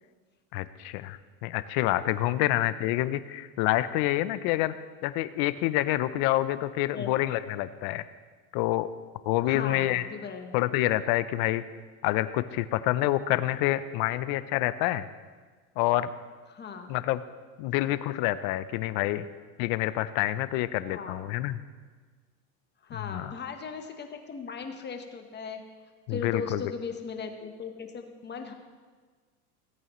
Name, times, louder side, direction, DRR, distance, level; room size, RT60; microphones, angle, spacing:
voice 1, 0.5-4.7 5.0-8.0 8.5-8.9 9.2-10.1 10.5-11.6 12.0-15.1 15.8-16.1 16.9-17.2 17.6-19.3 19.6-21.6 22.9-23.3 26.1-26.6, left 15 dB, 55° left, 14 dB, 0.6 m, -27 dB
voice 2, 9.5-10.6 16.5-16.9 19.1-19.3 20.9-21.2 22.8-25.6 26.1-28.5, left 5 dB, 20° left, 5 dB, 1.1 m, -38 dB
17.5 x 8.4 x 3.1 m, 1.4 s
supercardioid pair, 125°, 46 cm